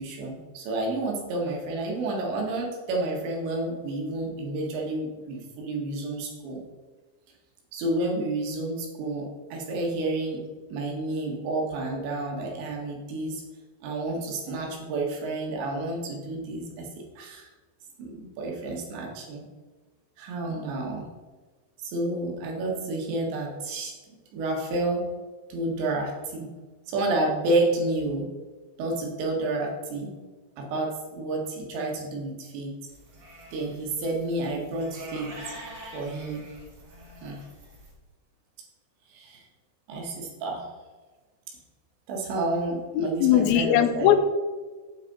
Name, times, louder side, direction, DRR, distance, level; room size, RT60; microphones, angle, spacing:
voice 1, 0.0-6.6 7.7-13.4 13.8-17.5 18.0-19.5 20.2-21.1 21.8-23.9 24.3-25.1 25.5-26.5 26.9-28.3 28.8-30.1 30.6-32.8 33.5-35.3 35.9-36.4 37.2-37.4 39.1-39.4 39.9-40.7 42.1-44.1, right 2 dB, 75° right, 0 dB, 4.0 m, -30 dB
sound 1, 32.9-37.9, right 1 dB, 45° right, 1.4 m, -45 dB
voice 2, 43.0-44.2, left 11 dB, 85° left, 9 dB, 3.0 m, -20 dB
9.1 x 8.5 x 4.1 m, 1.3 s
omnidirectional pair, 5.2 m